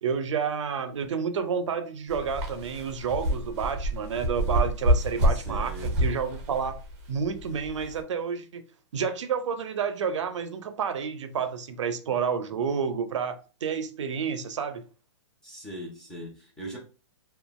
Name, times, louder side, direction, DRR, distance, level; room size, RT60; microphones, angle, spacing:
voice 1, 0.0-6.8 7.1-8.6 8.9-14.8, right 6 dB, 80° right, 0.5 m, -30 dB
sound 1, 2.1-8.0, equal, 25° right, 0.8 m, -27 dB
voice 2, 5.3-6.0 15.4-16.8, right 1 dB, 5° left, 0.6 m, -40 dB
3.0 x 2.3 x 2.3 m
hypercardioid pair, 160°, 15 cm